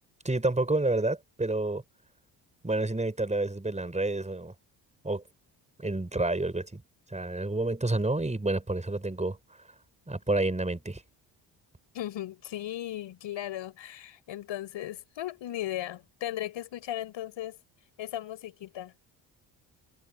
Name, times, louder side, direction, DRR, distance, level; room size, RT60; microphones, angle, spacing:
voice 1, 0.2-1.8 2.6-4.5 5.0-5.2 5.8-6.8 7.1-9.4 10.1-11.0, right 2 dB, 15° right, 5.6 m, -29 dB
voice 2, 11.9-17.6 18.0-18.9, left 13 dB, 70° left, 5.9 m, -36 dB
supercardioid pair, 65°, 46 cm